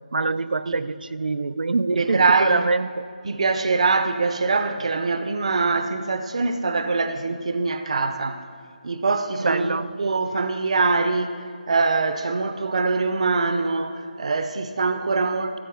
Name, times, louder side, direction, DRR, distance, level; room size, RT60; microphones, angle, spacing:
voice 1, 0.1-3.1 9.4-9.9, right 3 dB, 90° right, 0.5 m, -24 dB
voice 2, 2.0-2.6 3.2-8.4 8.8-11.4 11.7-15.6, right 4 dB, 45° right, 0.6 m, -23 dB
14.5 x 7.6 x 6.3 m
hypercardioid pair, 175°, 5 cm